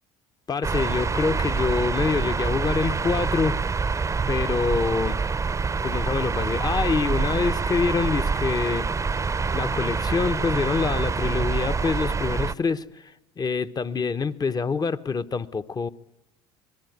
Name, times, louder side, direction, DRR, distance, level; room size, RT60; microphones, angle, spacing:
voice 1, 0.5-3.6 4.3-5.2 5.8-8.9 9.5-15.9, left 5 dB, 30° left, 1.2 m, -26 dB
sound 1, 0.6-12.5, right 4 dB, 20° right, 0.8 m, -26 dB
25.5 x 19.5 x 9.5 m
hypercardioid pair, 75°, 13 cm